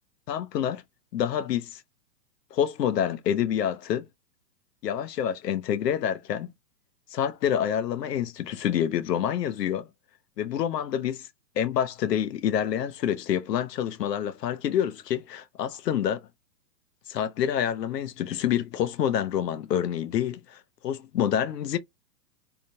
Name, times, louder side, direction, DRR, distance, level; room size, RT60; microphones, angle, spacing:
voice 1, 0.3-0.8 1.1-1.8 2.5-4.0 4.8-6.5 7.1-9.9 10.4-11.2 11.6-16.2 17.1-21.8, left 9 dB, 75° left, 0.8 m, -27 dB
3.7 x 2.3 x 2.7 m
hypercardioid pair, 165°, 49 cm